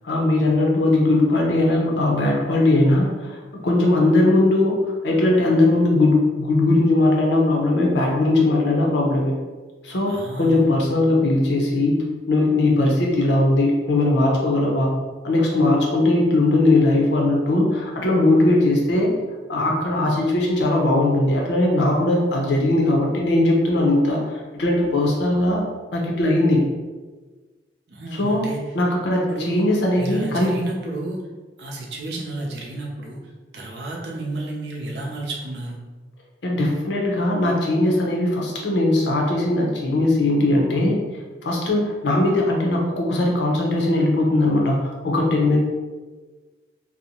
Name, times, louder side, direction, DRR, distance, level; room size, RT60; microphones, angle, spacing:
voice 1, 0.0-4.8 5.0-9.3 9.8-12.0 12.3-14.9 15.2-19.1 19.5-25.6 25.9-26.6 28.1-28.5 28.7-30.5 36.4-41.0 41.4-44.8 45.0-45.6, left 2 dB, 75° left, -1 dB, 0.6 m, -19 dB
voice 2, 10.1-10.7 27.9-28.7 29.3-29.6 30.0-31.2 31.6-33.2 33.5-35.8, right 2 dB, 65° right, -2 dB, 0.5 m, -31 dB
2.6 x 2.0 x 2.8 m, 1.3 s
head